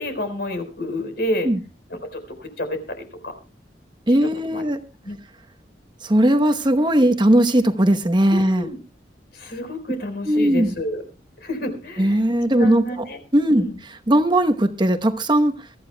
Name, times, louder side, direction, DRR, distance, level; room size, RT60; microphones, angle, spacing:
voice 1, 0.0-1.5 1.9-3.3 4.5-4.6 5.0-5.2 8.3-8.8 9.3-11.0 11.4-12.2 12.6-13.2 13.5-13.8, left 1 dB, 65° left, 4.2 m, -29 dB
voice 2, 4.1-4.8 6.0-8.7 10.3-10.7 12.0-13.0 13.3-13.7 14.1-15.5, right 1 dB, 25° right, 1.0 m, -18 dB
23.0 x 14.0 x 2.2 m
head